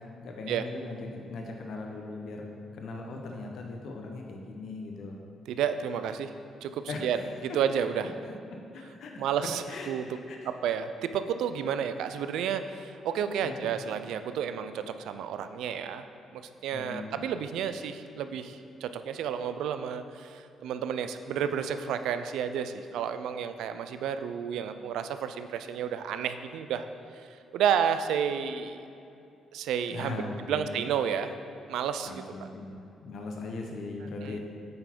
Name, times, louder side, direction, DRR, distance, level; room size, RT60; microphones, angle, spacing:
voice 1, 0.0-2.4 2.7-5.2 6.9-7.1 7.5-7.6 8.7-9.2 9.7-10.5 12.3-12.4 13.4-13.7 16.7-17.2 29.9-30.8 32.1-34.4, left 3 dB, 70° left, 1 dB, 0.7 m, -39 dB
voice 2, 5.5-6.3 6.6-8.1 9.2-10.1 10.5-16.0 16.3-26.9 27.1-28.9 29.5-30.2 30.5-31.3 31.7-32.5 34.2-34.4, right 8 dB, 85° right, 10 dB, 0.3 m, -31 dB
8.5 x 4.0 x 4.4 m, 2.7 s
cardioid pair, 90°, 0 cm